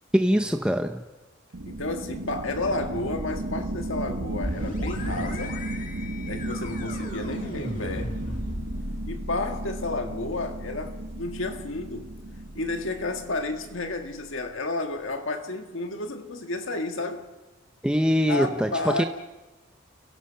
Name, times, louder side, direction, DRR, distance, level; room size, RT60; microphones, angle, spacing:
voice 1, 0.1-1.0 17.8-18.7 19.0-19.1, equal, 5° right, 0.7 m, -22 dB
sound 1, 1.5-13.8, right 1 dB, 85° right, 1.1 m, -35 dB
voice 2, 1.6-5.6 6.3-8.4 9.1-12.1 12.5-17.3 18.3-19.1, left 2 dB, 75° left, 1.6 m, -31 dB
sound 2, 4.4-14.0, left 1 dB, 40° left, 2.7 m, -37 dB
29.5 x 17.5 x 5.7 m
head